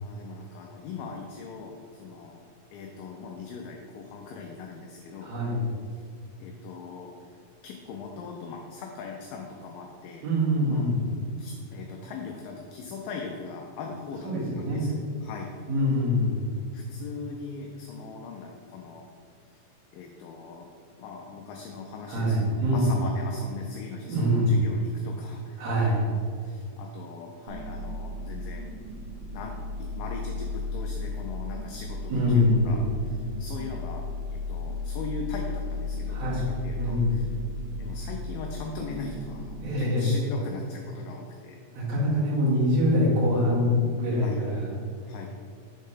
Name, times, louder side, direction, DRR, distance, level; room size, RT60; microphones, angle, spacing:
voice 1, 0.0-2.4 2.7-5.3 5.9-6.0 6.4-7.1 7.6-10.3 10.6-10.9 11.4-14.3 14.6-15.0 15.2-15.5 16.7-19.1 19.5-19.6 19.9-20.7 21.0-25.6 26.0-28.6 29.2-34.0 34.3-37.3 37.8-41.6 44.2-44.4 45.1-45.3, left 4 dB, 80° left, 1 dB, 2.1 m, -40 dB
voice 2, 5.2-5.6 10.2-11.0 14.2-14.9 15.7-16.4 22.1-22.9 24.1-24.6 25.6-26.0 32.1-32.8 36.1-36.4 36.8-37.1 39.6-40.1 41.7-44.7, left 1 dB, 55° right, -7 dB, 2.8 m, -24 dB
sound 1, 27.5-39.6, left 3 dB, 80° right, 2.2 m, -35 dB
6.5 x 3.6 x 5.5 m, 2.2 s
omnidirectional pair, 4.2 m